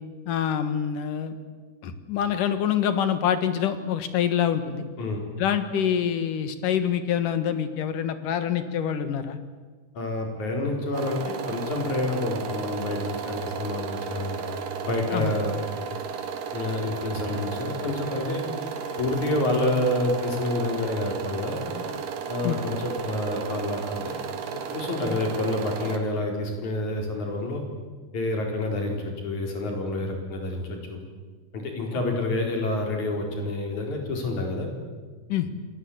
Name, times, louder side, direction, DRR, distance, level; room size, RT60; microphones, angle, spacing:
voice 1, 0.3-1.4 1.8-4.8 5.4-9.4 15.1-15.3 22.4-22.6 31.9-32.0 35.3-35.5, left 9 dB, 85° left, 10 dB, 3.2 m, -26 dB
voice 2, 10.0-14.4 14.8-15.6 16.5-18.4 19.0-21.7 22.3-24.1 24.5-27.6 28.1-30.6 30.9-31.0 31.5-34.7, left 2 dB, 65° left, 2 dB, 5.7 m, -28 dB
sound 1, 10.9-26.0, right 6 dB, 90° right, 3.5 m, -34 dB
27.0 x 19.5 x 8.7 m, 1.4 s
omnidirectional pair, 3.7 m